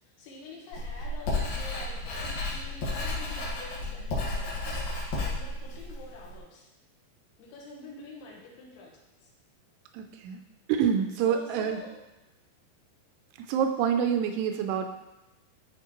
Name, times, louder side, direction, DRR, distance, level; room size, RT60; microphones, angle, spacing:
voice 1, 0.2-6.7 7.4-8.9 9.2-9.3 11.3-11.9, left 3 dB, 80° left, -3 dB, 3.7 m, -47 dB
Writing, 0.7-6.4, left 2 dB, 60° left, 2.9 m, -32 dB
voice 2, 9.9-10.4 10.7-11.8 13.4-14.9, right 8 dB, 85° right, 6 dB, 2.4 m, -27 dB
11.5 x 4.3 x 3.0 m, 0.98 s
omnidirectional pair, 5.4 m